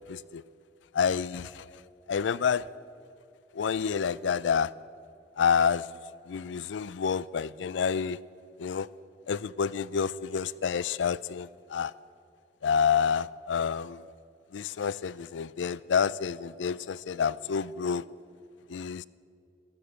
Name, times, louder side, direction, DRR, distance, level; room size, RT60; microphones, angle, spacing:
voice 1, 0.1-0.4 0.9-1.7 2.1-2.7 3.5-4.7 5.4-5.9 6.3-8.2 8.6-8.9 9.3-11.9 12.6-14.0 14.5-18.1 18.7-19.1, left 6 dB, 85° left, 19 dB, 0.4 m, -28 dB
13.5 x 12.5 x 8.1 m, 2.5 s
head